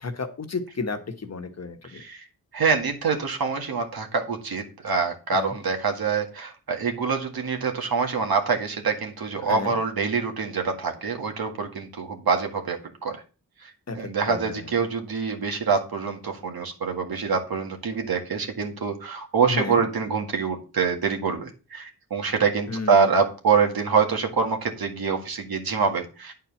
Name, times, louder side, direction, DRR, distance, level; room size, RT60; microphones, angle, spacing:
voice 1, 0.0-2.0 5.3-5.5 9.5-9.8 13.9-14.7 19.5-19.8 22.7-23.1, left 4 dB, 45° left, 6 dB, 1.3 m, -32 dB
voice 2, 1.9-2.2 2.5-13.2 13.6-26.3, right 5 dB, 75° right, 3 dB, 2.0 m, -25 dB
9.6 x 4.4 x 7.0 m, 0.33 s
wide cardioid pair, 130°, 36 cm